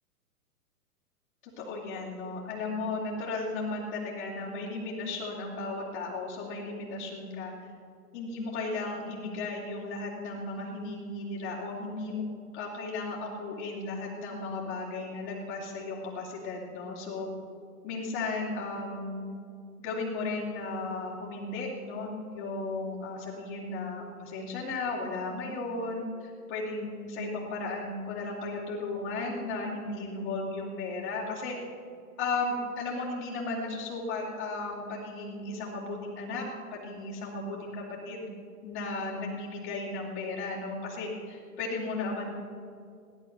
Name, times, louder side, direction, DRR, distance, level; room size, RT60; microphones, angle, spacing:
voice 1, 1.4-7.5 8.1-12.2 12.5-17.3 17.8-19.3 19.8-31.6 32.2-36.4 36.7-38.3 38.6-42.3, left 3 dB, 50° left, -6 dB, 3.1 m, -35 dB
17.5 x 10.5 x 6.7 m, 2.4 s
figure-of-eight pair, 110°, 46 cm